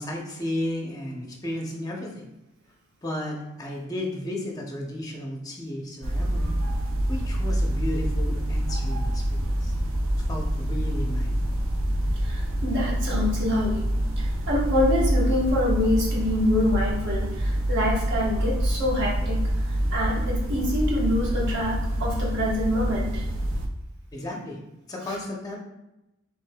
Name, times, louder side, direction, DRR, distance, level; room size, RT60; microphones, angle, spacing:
voice 1, 0.0-2.3 3.0-6.6 7.1-9.7 10.3-11.6 24.1-24.6 24.9-25.6, left 1 dB, 15° left, 0 dB, 0.7 m, -33 dB
sound 1, 6.0-23.7, right 1 dB, 70° right, 0.5 m, -26 dB
voice 2, 12.2-13.8 14.2-19.4 19.9-23.2, left 1 dB, 55° right, -3 dB, 1.2 m, -26 dB
5.1 x 3.4 x 2.2 m, 0.94 s
head